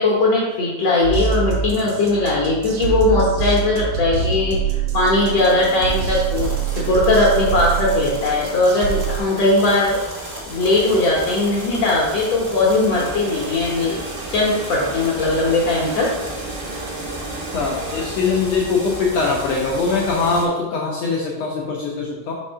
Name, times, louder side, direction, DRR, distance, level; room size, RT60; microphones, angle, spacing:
voice 1, 0.0-10.0 10.5-14.0 14.3-16.1, left 2 dB, 70° left, -3 dB, 1.6 m, -19 dB
sound 1, 1.0-9.2, right 7 dB, 70° right, 2.1 m, -25 dB
sound 2, 5.1-20.4, equal, 40° right, 0.9 m, -34 dB
sound 3, 12.9-18.2, right 5 dB, 90° right, 2.3 m, -35 dB
voice 2, 17.5-22.3, left 4 dB, 85° left, -2 dB, 1.4 m, -22 dB
5.3 x 3.6 x 5.4 m, 1.2 s
omnidirectional pair, 3.9 m